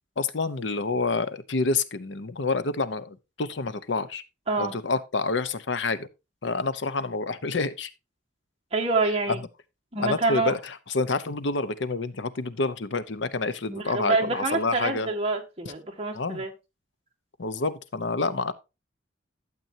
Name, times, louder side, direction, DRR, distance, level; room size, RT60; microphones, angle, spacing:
voice 1, 0.2-4.2 4.6-6.1 6.4-7.9 9.3-9.4 10.0-15.1 16.1-16.4 17.4-18.5, left 3 dB, 70° left, 0.8 m, -28 dB
voice 2, 4.5-4.8 8.7-9.4 9.9-10.5 13.7-16.5, right 3 dB, 35° right, 1.8 m, -27 dB
12.0 x 7.7 x 2.8 m
head